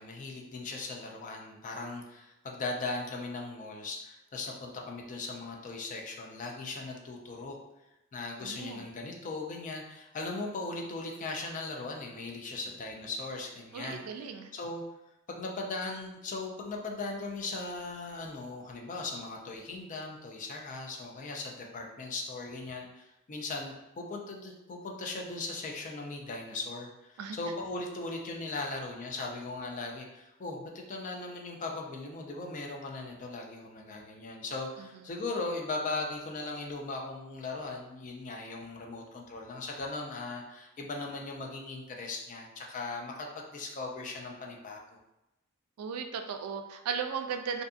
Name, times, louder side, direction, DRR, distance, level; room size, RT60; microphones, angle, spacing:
voice 1, 0.0-7.6 8.1-14.2 14.5-14.8 15.3-45.0, left 3 dB, 35° left, 0 dB, 0.4 m, -38 dB
voice 2, 8.4-8.8 13.7-14.5 27.2-27.4 34.8-35.0 45.8-47.6, right 6 dB, 90° right, 6 dB, 0.3 m, -36 dB
2.6 x 2.5 x 2.3 m, 0.94 s
head